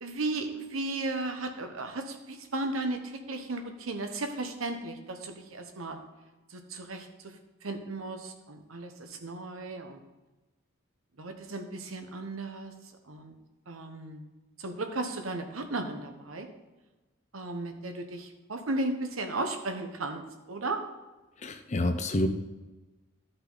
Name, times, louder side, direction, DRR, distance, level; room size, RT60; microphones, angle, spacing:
voice 1, 0.0-6.0 6.5-7.4 7.6-10.0 11.2-13.3 13.7-14.2 14.6-16.5 17.3-20.8, right 2 dB, 90° right, 6 dB, 1.1 m, -35 dB
voice 2, 21.4-22.3, left 1 dB, 35° left, 7 dB, 0.5 m, -28 dB
13.0 x 5.6 x 4.0 m, 1.2 s
head